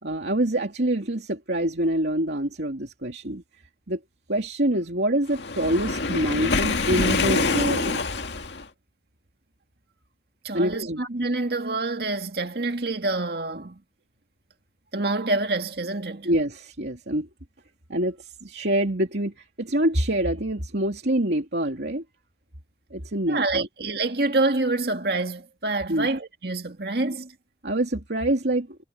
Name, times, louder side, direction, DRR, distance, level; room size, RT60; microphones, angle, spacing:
voice 1, 0.0-3.4 3.9-4.0 4.3-8.1 10.5-11.0 16.2-17.3 17.9-22.0 22.9-23.7 25.9-26.1 27.6-28.8, right 1 dB, 80° right, 2.8 m, -26 dB
Waves surf, 5.3-8.6, left 3 dB, 85° left, 2.0 m, -25 dB
voice 2, 10.4-13.8 14.9-16.3 23.3-27.4, right 2 dB, 65° right, 2.1 m, -27 dB
head